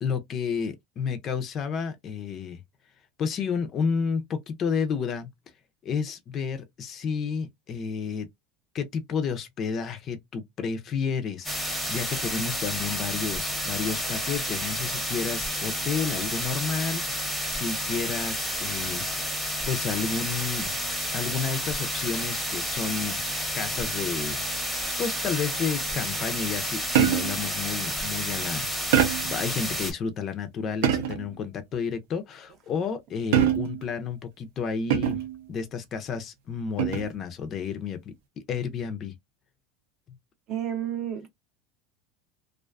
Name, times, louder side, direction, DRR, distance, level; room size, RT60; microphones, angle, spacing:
voice 1, 0.0-2.6 3.2-5.3 5.8-8.3 8.7-20.8 21.1-23.2 23.5-28.7 29.3-35.2 35.5-38.0 38.5-39.1, left 6 dB, 30° left, 0.4 m, -31 dB
sound 1, 11.4-29.9, equal, ahead, 0.7 m, -30 dB
sound 2, 26.9-27.5 28.9-29.4 30.8-31.3 33.3-33.9 34.9-35.4 36.8-37.2, right 9 dB, 80° right, 0.6 m, -23 dB
voice 2, 40.5-41.3, right 10 dB, 35° right, 0.6 m, -31 dB
2.4 x 2.2 x 2.3 m
supercardioid pair, 155°, 0 cm